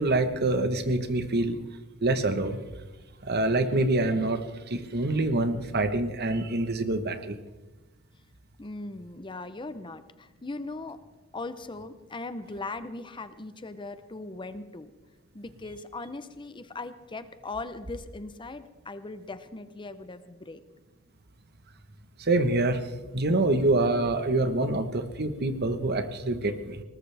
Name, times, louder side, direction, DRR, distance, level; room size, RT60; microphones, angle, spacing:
voice 1, 0.0-1.6 2.0-2.6 3.2-7.4 22.2-22.8 23.1-26.8, right 2 dB, 50° right, 10 dB, 1.2 m, -26 dB
voice 2, 8.6-11.0 11.3-14.9 15.3-20.6, left 2 dB, 25° left, 12 dB, 0.7 m, -39 dB
20.5 x 19.0 x 3.4 m, 1.1 s
head